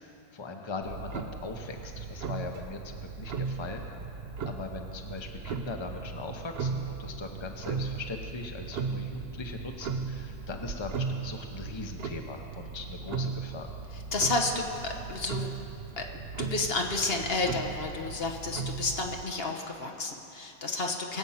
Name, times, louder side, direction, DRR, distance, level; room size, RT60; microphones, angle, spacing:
voice 1, 0.0-3.8 4.4-13.7, left 3 dB, 30° left, 3 dB, 0.9 m, -40 dB
Clock, 0.8-19.2, right 5 dB, 70° right, 0.9 m, -37 dB
voice 2, 14.1-15.5 16.0-21.2, left 3 dB, 70° left, 2 dB, 1.5 m, -31 dB
21.5 x 8.1 x 5.7 m, 2.8 s
omnidirectional pair, 1.0 m